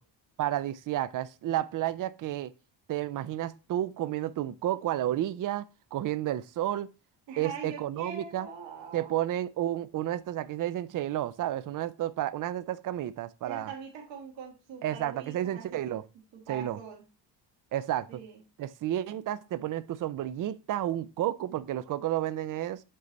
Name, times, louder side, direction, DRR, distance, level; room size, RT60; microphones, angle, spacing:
voice 1, 0.4-2.5 2.9-5.7 5.9-6.9 7.4-8.5 8.9-13.7 14.8-16.0 16.5-16.8 17.7-18.1 18.6-22.8, right 12 dB, 45° right, 0.5 m, -31 dB
voice 2, 7.3-9.1 13.4-16.0 16.3-17.0 18.1-18.4, right 6 dB, 80° right, 1.7 m, -43 dB
7.6 x 3.2 x 3.9 m
cardioid pair, 110°, 44 cm